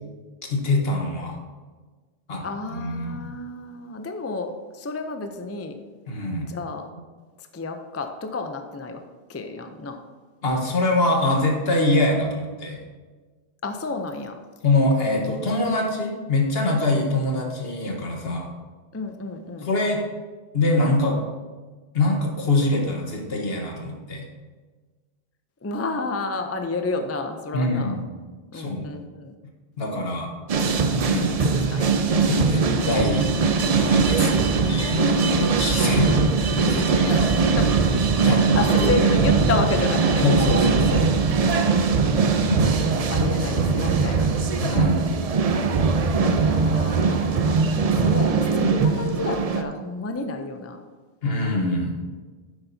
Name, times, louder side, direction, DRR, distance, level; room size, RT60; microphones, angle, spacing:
voice 1, 0.5-1.4 2.3-2.4 2.7-3.3 6.1-6.5 10.4-12.8 14.6-18.5 19.6-20.0 20.5-21.2 21.9-24.3 27.5-28.0 28.5-28.9 29.8-30.3 31.0-31.3 32.3-33.3 33.7-36.3 36.5-37.2 38.2-39.4 40.2-41.1 42.4-42.7 44.6-45.0 51.2-52.0, left 2 dB, 70° left, 1 dB, 1.5 m, -24 dB
voice 2, 2.4-5.8 6.4-6.9 7.5-9.0 9.3-10.0 13.6-14.4 18.9-19.7 25.6-28.0 28.5-29.3 30.8-32.0 35.8-36.2 36.8-37.7 38.2-40.3 41.7-42.2 42.8-44.3 46.5-50.8, left 3 dB, 20° left, 6 dB, 0.4 m, -31 dB
sound 1, 30.5-49.6, right 5 dB, 45° right, 0.5 m, -21 dB
10.0 x 7.9 x 2.7 m, 1.4 s
omnidirectional pair, 1.1 m